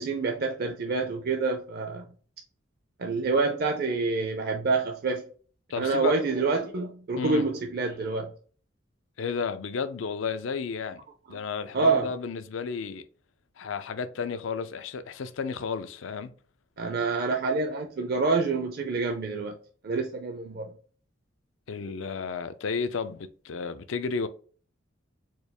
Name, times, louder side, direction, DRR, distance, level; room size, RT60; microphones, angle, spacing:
voice 1, 0.0-2.0 3.0-5.3 5.8-8.3 11.3-11.4 11.7-12.1 16.8-19.6 19.8-20.7, right 4 dB, 55° right, 0.5 m, -27 dB
voice 2, 5.7-6.1 7.2-7.5 9.2-11.0 11.3-13.1 13.6-16.3 21.7-24.3, left 5 dB, 80° left, 0.5 m, -32 dB
4.5 x 2.3 x 3.3 m
head